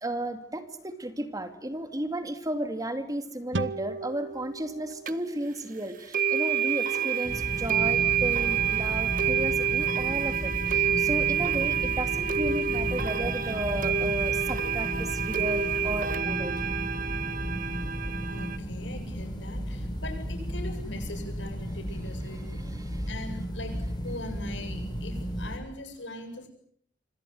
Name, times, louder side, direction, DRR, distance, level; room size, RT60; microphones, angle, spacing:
voice 1, 0.0-16.6 22.5-23.1, right 1 dB, 20° right, 8 dB, 2.4 m, -34 dB
sound 1, 3.5-6.9, right 3 dB, 85° right, 1.3 m, -38 dB
sound 2, 5.1-5.2 6.1-18.6, right 7 dB, 50° right, 1.2 m, -28 dB
sound 3, 7.2-25.6, equal, 25° left, 7.3 m, -34 dB
voice 2, 18.3-22.5 23.1-26.5, left 2 dB, 75° left, 6 dB, 7.9 m, -41 dB
26.5 x 26.5 x 7.8 m, 0.64 s
head